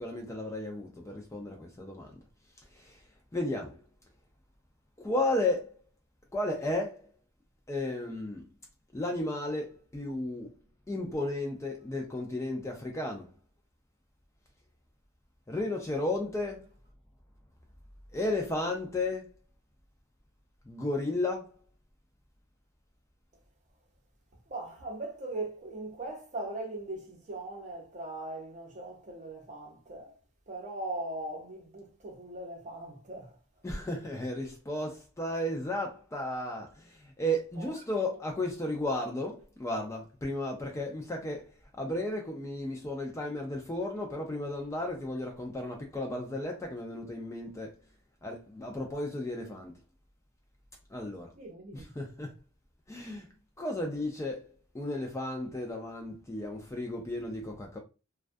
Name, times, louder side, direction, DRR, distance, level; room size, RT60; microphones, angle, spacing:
voice 1, 0.0-2.2 2.7-3.0 3.3-3.8 5.0-5.8 6.3-7.1 7.7-8.4 8.9-10.5 10.9-13.3 15.5-16.7 18.1-19.3 20.7-21.6 33.6-47.8 48.2-49.7 50.9-51.3 51.7-52.3 52.9-53.3 53.6-54.5 54.7-57.8, left 1 dB, 15° left, 0.4 m, -34 dB
voice 2, 24.5-30.1 30.5-33.3 37.6-37.7 51.4-51.9, right 2 dB, 35° right, 0.6 m, -40 dB
2.3 x 2.2 x 2.5 m
head